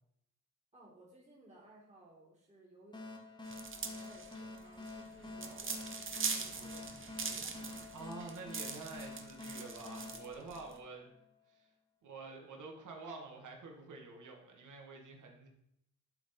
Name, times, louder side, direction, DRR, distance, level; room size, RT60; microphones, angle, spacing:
voice 1, 0.7-3.1 3.7-6.9 7.2-7.5, right 1 dB, 20° right, -5 dB, 2.2 m, -60 dB
sound 1, 2.9-11.3, left 2 dB, 15° left, 1.4 m, -48 dB
sound 2, 3.5-10.7, right 5 dB, 40° right, 1.0 m, -42 dB
voice 2, 7.9-11.1 11.5-11.7 12.0-15.5, right 3 dB, 65° right, 1 dB, 1.6 m, -48 dB
11.5 x 3.8 x 4.3 m, 0.75 s
cardioid pair, 95°, 32 cm